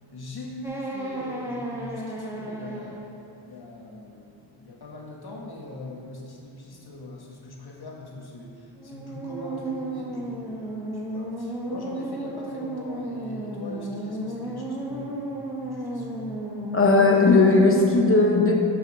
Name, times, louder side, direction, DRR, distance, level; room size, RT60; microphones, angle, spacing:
voice 1, 0.1-3.0 3.4-15.2 15.6-16.4, left 2 dB, 55° left, -2 dB, 1.5 m, -41 dB
sound 1, 0.6-3.1 8.8-17.9, right 1 dB, 5° right, 1.1 m, -33 dB
voice 2, 16.7-18.6, left 3 dB, 30° left, 1 dB, 1.1 m, -17 dB
6.0 x 5.5 x 6.2 m, 2.5 s
cardioid pair, 90°, 47 cm